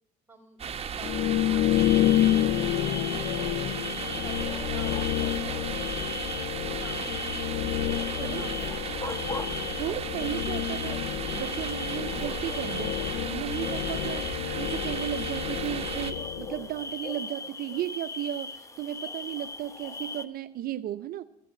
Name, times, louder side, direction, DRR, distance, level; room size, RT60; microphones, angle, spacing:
voice 1, 0.3-2.8 3.2-9.6, right 2 dB, 15° right, 1 dB, 4.4 m, -50 dB
sound 1, 0.6-16.1, right 7 dB, 35° right, 1.4 m, -36 dB
sound 2, 1.0-16.8, left 14 dB, 80° left, 0.5 m, -29 dB
sound 3, 1.7-20.2, left 3 dB, 20° left, 1.1 m, -39 dB
voice 2, 9.8-11.0 11.3-13.0 13.3-21.2, right 12 dB, 60° right, 12 dB, 0.5 m, -35 dB
14.5 x 7.6 x 8.6 m, 0.89 s
cardioid pair, 110°, 17 cm